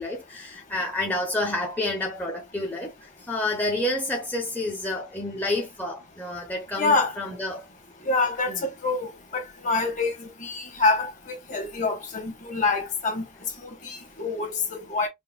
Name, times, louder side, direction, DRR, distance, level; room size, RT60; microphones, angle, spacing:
voice 1, 0.0-7.7 8.5-8.6, left 2 dB, 10° left, 0.6 m, -29 dB
voice 2, 6.8-7.2 8.0-13.2 13.6-15.1, left 3 dB, 40° left, 1.2 m, -26 dB
5.0 x 2.2 x 2.2 m
head